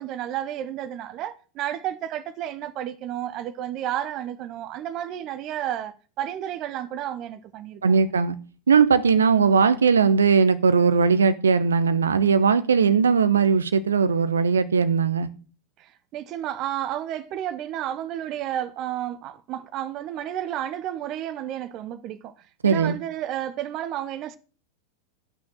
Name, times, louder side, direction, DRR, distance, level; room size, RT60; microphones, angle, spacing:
voice 1, 0.0-8.1 15.8-22.3 22.6-24.4, right 11 dB, 35° right, 0.8 m, -31 dB
voice 2, 7.8-8.4 8.7-15.3 22.6-23.0, right 5 dB, 70° right, 0.9 m, -19 dB
12.5 x 6.1 x 6.2 m
figure-of-eight pair, 90°, 0 cm